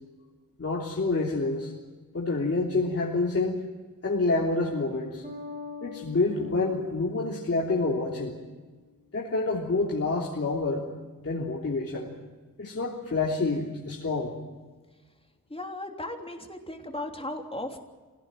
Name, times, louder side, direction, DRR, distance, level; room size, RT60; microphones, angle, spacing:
voice 1, 0.6-1.7 2.1-3.6 4.0-5.2 5.8-8.3 9.1-10.8 11.2-12.1 12.6-14.3, left 3 dB, 45° left, -4 dB, 3.4 m, -27 dB
Bass guitar, 5.2-8.8, left 4 dB, 20° right, 3.5 m, -44 dB
voice 2, 15.5-17.8, left 1 dB, 15° left, 2 dB, 3.3 m, -36 dB
25.5 x 17.5 x 9.2 m, 1.3 s
wide cardioid pair, 105°, 34 cm